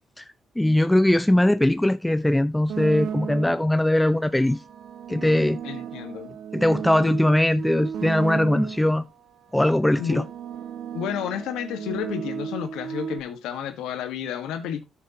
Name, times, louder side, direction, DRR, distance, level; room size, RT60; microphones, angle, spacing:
voice 1, 0.6-4.6 5.1-5.6 6.5-9.1 9.5-10.2, left 1 dB, 10° left, 0.4 m, -20 dB
sound 1, 2.7-3.8 4.5-9.0 9.8-13.2, right 8 dB, 80° right, 1.0 m, -34 dB
voice 2, 5.6-6.3 9.9-10.3 10.9-14.9, left 9 dB, 90° left, 1.4 m, -31 dB
13.0 x 6.4 x 2.9 m
cardioid pair, 90°, 0 cm